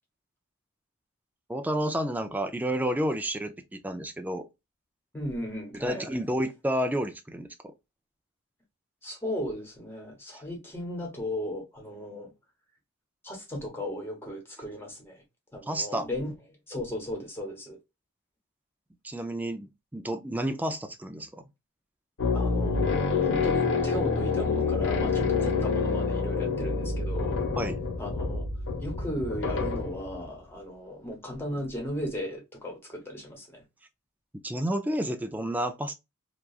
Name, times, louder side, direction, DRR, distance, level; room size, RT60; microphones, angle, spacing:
voice 1, 1.5-4.4 5.7-7.7 15.7-16.1 19.0-21.4 27.6-27.8 34.4-35.9, right 1 dB, 10° right, 0.4 m, -30 dB
voice 2, 5.1-6.1 9.0-12.3 13.2-15.2 15.5-16.3 16.7-17.8 22.3-27.4 28.0-28.5 28.8-33.6, left 1 dB, 10° left, 1.1 m, -36 dB
sound 1, 22.2-30.2, left 4 dB, 60° left, 0.7 m, -27 dB
2.9 x 2.3 x 2.3 m
head